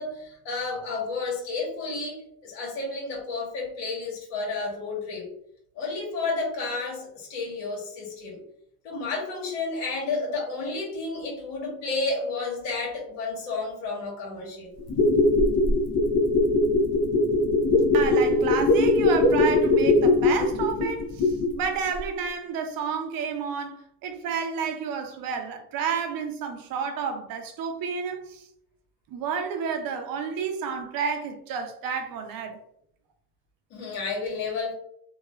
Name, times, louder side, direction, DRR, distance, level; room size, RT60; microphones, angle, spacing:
voice 1, 0.0-5.3 5.7-8.4 8.8-14.7 33.7-34.7, left 3 dB, 75° left, 1.4 m, -31 dB
sound 1, 14.8-21.7 22.0-22.1, left 2 dB, 50° left, 0.8 m, -21 dB
voice 2, 17.9-28.4 29.1-32.6, right 6 dB, 50° right, 0.6 m, -30 dB
3.0 x 2.3 x 2.3 m
supercardioid pair, 95°, 47 cm